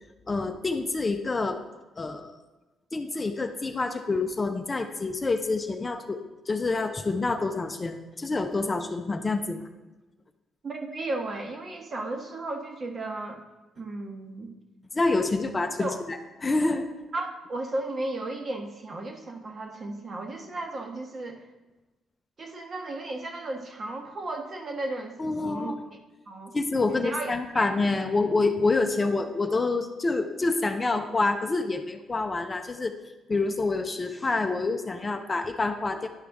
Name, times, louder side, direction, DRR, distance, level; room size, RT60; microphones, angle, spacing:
voice 1, 0.3-1.6 2.0-2.4 2.9-9.7 14.9-16.9 25.2-25.9 26.5-33.0 33.3-36.1, left 3 dB, 25° left, 6 dB, 0.5 m, -27 dB
voice 2, 10.6-13.4 13.8-14.5 15.8-16.0 17.1-21.4 22.4-25.2 25.4-25.7 26.3-26.5 26.9-27.7, right 2 dB, 40° right, 3 dB, 1.1 m, -34 dB
11.0 x 4.9 x 3.5 m, 1.1 s
cardioid pair, 90°, 0 cm